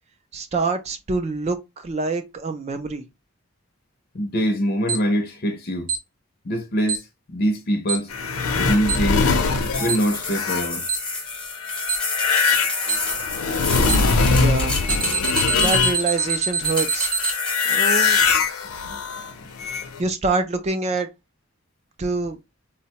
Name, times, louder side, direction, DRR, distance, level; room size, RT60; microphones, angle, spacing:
voice 1, 0.3-3.1 14.3-14.8 15.6-17.1 17.4-18.2 20.0-21.1 22.0-22.4, right 3 dB, 30° right, 0.3 m, -26 dB
voice 2, 4.1-5.9 6.5-8.1 8.6-9.3 9.8-10.9 18.9-19.0, equal, 45° left, 0.5 m, -24 dB
Alarm, 4.9-5.0 5.9-6.0 6.9-7.0 7.9-8.0 8.9-9.0 9.9-10.0 10.9-11.0 11.9-12.0 12.9-13.0 13.9-14.0 14.9-17.3, right 5 dB, 85° right, 1.0 m, -23 dB
sound 1, 8.1-16.4 16.6-20.0, left 4 dB, 85° left, 0.6 m, -22 dB
sound 2, 9.6-16.1 16.6-18.1, left 2 dB, 5° left, 0.6 m, -30 dB
3.8 x 2.1 x 2.8 m
head